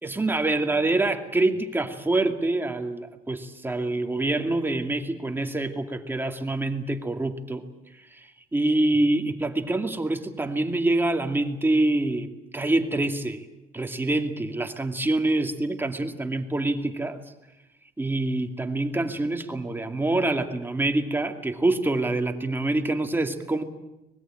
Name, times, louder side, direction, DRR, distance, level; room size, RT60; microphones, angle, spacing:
voice 1, 0.0-7.6 8.1-13.5 13.7-17.2 18.0-23.6, right 2 dB, 10° right, 5 dB, 2.4 m, -26 dB
25.0 x 20.5 x 9.0 m, 0.97 s
cardioid pair, 110°, 17 cm